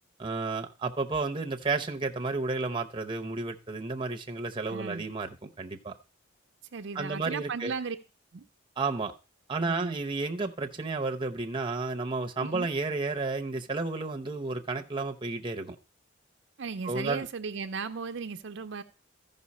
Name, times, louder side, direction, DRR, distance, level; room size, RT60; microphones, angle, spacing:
voice 1, 0.2-5.9 6.9-7.7 8.8-9.1 9.5-15.8 16.8-17.2, right 3 dB, 25° right, 0.7 m, -32 dB
voice 2, 4.7-5.0 6.7-8.0 8.3-8.5 9.6-10.0 12.4-12.7 16.6-18.8, right 5 dB, 65° right, 0.5 m, -36 dB
14.0 x 5.4 x 4.2 m
head